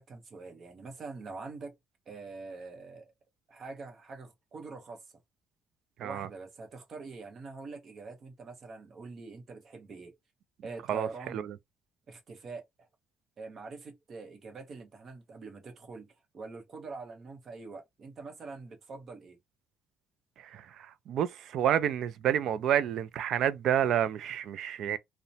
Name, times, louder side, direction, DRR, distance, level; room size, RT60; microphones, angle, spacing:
voice 1, 0.0-1.7 2.1-3.1 3.5-5.0 6.0-10.2 10.6-11.4 12.1-12.6 13.4-16.1 16.3-19.4, right 4 dB, 35° right, 0.8 m, -44 dB
voice 2, 10.9-11.5 20.4-25.0, right 10 dB, 55° right, 0.3 m, -29 dB
2.8 x 2.1 x 2.6 m
cardioid pair, 155°, 0 cm